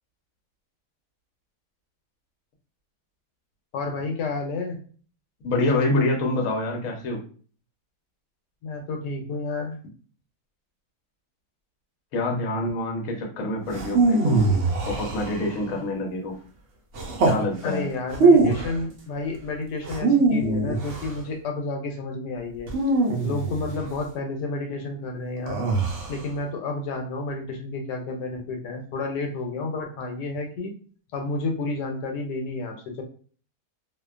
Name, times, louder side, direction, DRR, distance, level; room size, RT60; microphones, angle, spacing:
voice 1, 3.7-4.8 8.6-9.7 17.6-22.7 23.2-25.6 26.1-30.7 31.1-33.0, left 3 dB, 85° left, 3 dB, 1.2 m, -31 dB
voice 2, 5.4-7.2 12.1-14.5 14.9-16.4 17.2-17.9, left 2 dB, 60° left, 1 dB, 1.0 m, -26 dB
sound 1, 13.7-15.7 16.9-17.4 18.1-18.8 19.8-21.2 22.7-23.9 25.5-26.2, right 3 dB, 65° right, 0.8 m, -22 dB
2.7 x 2.1 x 2.3 m, 0.41 s
omnidirectional pair, 1.8 m